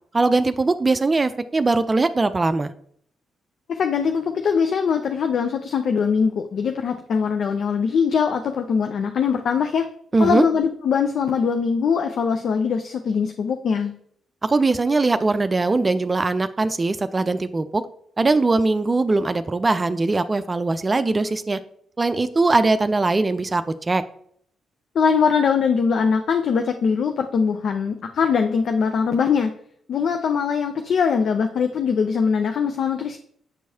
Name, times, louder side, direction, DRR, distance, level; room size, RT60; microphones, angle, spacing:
voice 1, 0.1-2.7 10.1-10.4 14.4-17.8 18.2-21.6 22.0-24.0, right 3 dB, 30° right, 11 dB, 0.4 m, -21 dB
voice 2, 3.7-9.9 10.2-13.9 24.9-29.5 29.9-33.2, left 6 dB, 60° left, 6 dB, 0.4 m, -22 dB
8.0 x 4.6 x 2.7 m, 0.65 s
hypercardioid pair, 45°, 0 cm